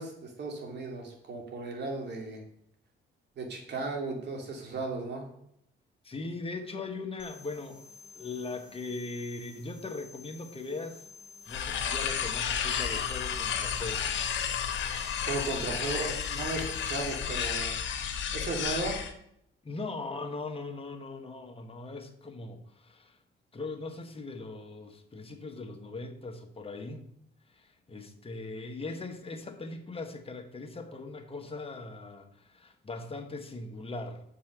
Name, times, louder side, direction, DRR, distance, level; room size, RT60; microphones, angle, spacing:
voice 1, 0.0-2.4 3.4-5.3 15.3-17.7 18.3-19.0, right 3 dB, 60° right, 1 dB, 2.7 m, -35 dB
voice 2, 6.0-7.8 8.1-11.0 11.5-14.1 15.5-15.8 19.6-23.2 23.5-27.0 27.5-34.2, left 3 dB, 30° left, 4 dB, 1.5 m, -40 dB
sound 1, 7.2-17.2, left 4 dB, 5° right, 1.9 m, -52 dB
sound 2, 11.5-19.1, left 8 dB, 70° left, 1.3 m, -32 dB
7.3 x 5.6 x 6.7 m, 0.72 s
cardioid pair, 90°, 20 cm